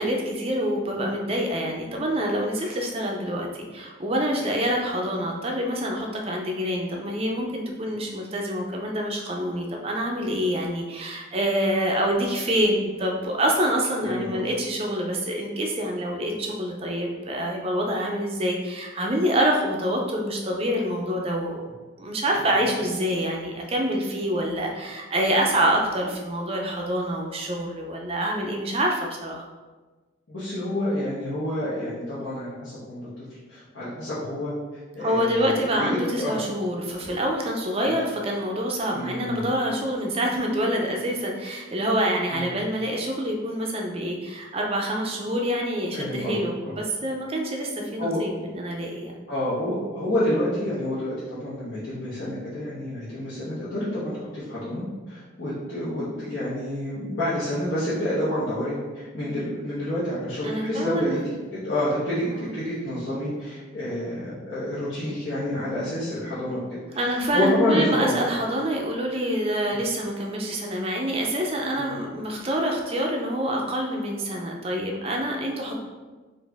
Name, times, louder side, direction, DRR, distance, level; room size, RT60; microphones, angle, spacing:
voice 1, 0.0-21.6 22.0-29.5 35.0-49.2 60.4-61.2 62.3-62.5 67.0-75.8, equal, 30° right, 0 dB, 0.5 m, -26 dB
voice 2, 14.0-14.5 24.1-24.3 30.3-33.0 33.5-34.5 34.9-36.4 37.8-37.9 38.9-39.4 42.3-42.5 45.9-46.4 46.6-46.8 48.0-48.2 49.3-61.2 61.5-66.6 67.0-68.2 71.8-71.9, left 1 dB, 65° left, -11 dB, 1.2 m, -28 dB
4.3 x 2.6 x 3.4 m, 1.3 s
head